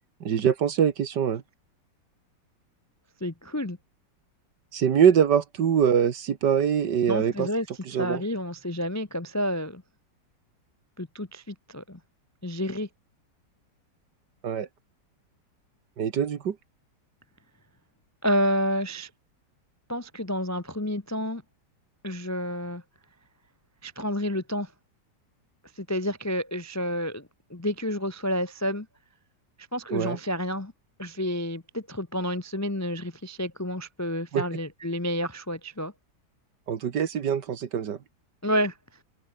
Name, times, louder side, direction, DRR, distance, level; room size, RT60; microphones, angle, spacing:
voice 1, 0.2-1.4 4.7-7.5 7.9-8.2 14.4-14.7 16.0-16.6 29.9-30.2 34.3-34.4 36.7-38.0, right 8 dB, 65° right, 2.0 m, -23 dB
voice 2, 3.2-3.8 7.1-7.7 8.0-9.8 11.0-12.0 12.4-12.9 18.2-19.1 19.9-21.4 22.0-22.8 23.8-24.7 25.8-28.9 29.7-30.7 31.0-35.9 38.4-38.8, equal, 15° left, 0.5 m, -29 dB
omnidirectional pair, 2.0 m